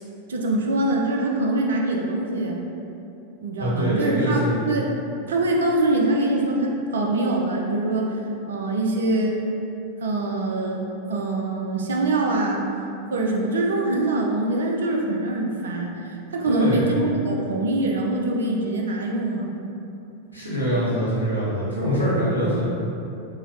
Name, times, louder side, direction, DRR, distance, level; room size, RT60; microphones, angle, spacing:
voice 1, 0.3-2.6 3.4-4.4 4.7-4.9 5.3-8.2 8.5-9.4 10.0-10.8 11.1-12.6 13.1-19.5, right 2 dB, 65° right, 0 dB, 0.4 m, -24 dB
voice 2, 3.6-4.6 16.4-16.9 20.3-22.7, equal, 85° right, -9 dB, 0.9 m, -23 dB
3.6 x 2.1 x 3.0 m, 2.7 s
figure-of-eight pair, 90°, 0 cm